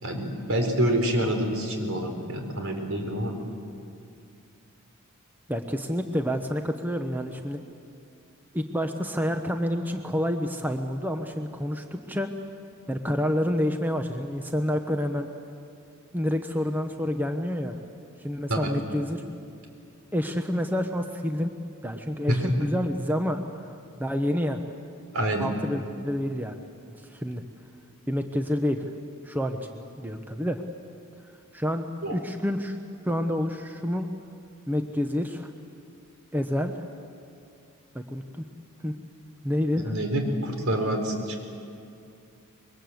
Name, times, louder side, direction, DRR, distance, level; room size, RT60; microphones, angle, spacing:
voice 1, 0.0-3.4 18.5-18.7 22.3-22.5 25.1-25.5 32.0-32.1 39.7-41.4, right 1 dB, 75° right, 3 dB, 4.2 m, -27 dB
voice 2, 5.5-7.6 8.5-12.3 12.9-15.3 16.1-17.8 18.2-19.2 20.1-21.5 21.8-23.4 24.0-24.6 25.4-26.6 27.1-27.4 28.1-28.8 29.2-30.6 31.5-31.9 32.1-32.8 33.0-34.1 34.7-35.5 36.3-36.9 37.9-38.4 38.8-39.0 39.4-40.0, equal, 10° right, 5 dB, 1.0 m, -28 dB
25.5 x 22.5 x 7.9 m, 2.4 s
head